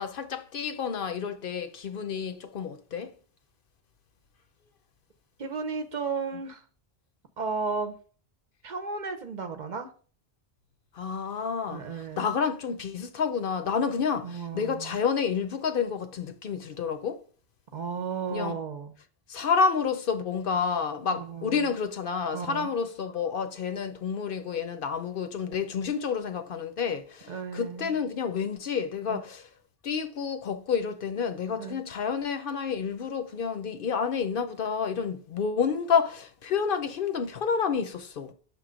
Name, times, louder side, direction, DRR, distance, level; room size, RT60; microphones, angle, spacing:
voice 1, 0.0-3.1 10.9-17.2 18.3-18.6 19.3-29.5 29.8-38.3, left 6 dB, 65° left, 0.8 m, -29 dB
voice 2, 5.4-6.6 7.4-7.9 8.6-9.9 11.7-12.3 14.2-15.0 17.7-18.9 21.1-21.7 22.3-22.7 27.3-28.0 29.1-29.2 31.6-31.8, right 5 dB, 50° right, 0.8 m, -34 dB
6.5 x 3.0 x 5.0 m
omnidirectional pair, 1.0 m